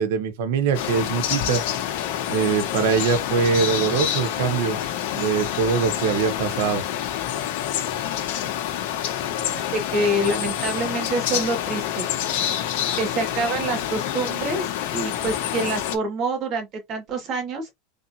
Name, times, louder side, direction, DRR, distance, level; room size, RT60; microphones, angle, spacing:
voice 1, 0.0-1.6 2.3-4.8 5.1-6.8, right 6 dB, 75° right, 1.0 m, -23 dB
sound 1, 0.7-16.0, left 11 dB, 65° left, 1.3 m, -27 dB
voice 2, 9.2-12.1 13.0-17.7, right 2 dB, 40° right, 2.2 m, -27 dB
4.2 x 3.5 x 2.8 m
supercardioid pair, 135°, 0 cm